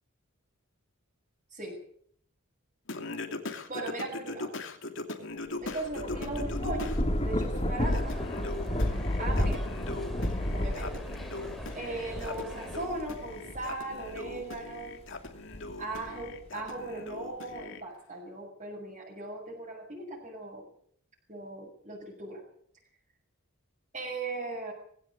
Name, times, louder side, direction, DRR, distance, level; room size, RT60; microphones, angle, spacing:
voice 1, 1.5-1.8 3.4-4.5 5.6-7.0 7.2-8.2 9.2-9.7 10.5-11.0 11.8-15.0 15.8-20.7 21.3-22.4 23.9-24.7, right 2 dB, 35° right, -4 dB, 7.1 m, -38 dB
Singing, 2.9-7.0 7.4-17.8, left 2 dB, 60° left, 2.7 m, -40 dB
Thunder / Rain, 5.6-14.6 15.1-16.4, left 1 dB, 30° left, 3.2 m, -32 dB
sound 1, 7.8-12.9, equal, ahead, 3.2 m, -46 dB
20.5 x 17.0 x 8.6 m, 0.63 s
head